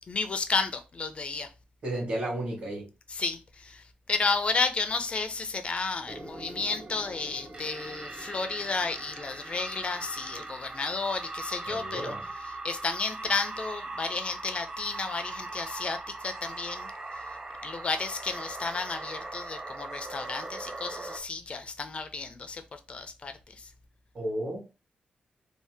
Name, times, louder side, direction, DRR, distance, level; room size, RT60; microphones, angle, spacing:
voice 1, 0.1-1.5 3.1-12.1 12.6-16.9 17.6-22.6 22.9-23.7, left 4 dB, 40° left, 0.4 m, -32 dB
voice 2, 1.8-2.9 11.7-12.3 24.1-24.6, right 1 dB, 50° right, 1.2 m, -33 dB
sound 1, 6.1-21.2, right 2 dB, 30° right, 0.4 m, -40 dB
2.7 x 2.1 x 3.2 m
wide cardioid pair, 135°, 3 cm